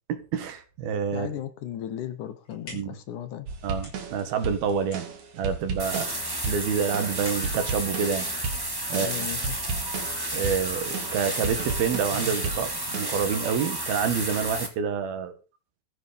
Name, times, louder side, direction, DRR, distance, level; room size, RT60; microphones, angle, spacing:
voice 1, 0.3-1.3 2.7-3.0 3.6-5.1 5.4-6.2 6.4-8.3 8.9-9.3 10.3-15.3, right 7 dB, 80° right, 3.7 m, -28 dB
voice 2, 1.1-3.5 8.9-9.6, left 10 dB, 65° left, 2.5 m, -36 dB
sound 1, 2.2-9.1, left 2 dB, 35° left, 6.9 m, -49 dB
sound 2, 3.5-13.1, right 4 dB, 55° right, 3.3 m, -35 dB
sound 3, 5.8-14.7, right 1 dB, 5° right, 2.2 m, -31 dB
15.0 x 10.5 x 5.3 m
omnidirectional pair, 4.2 m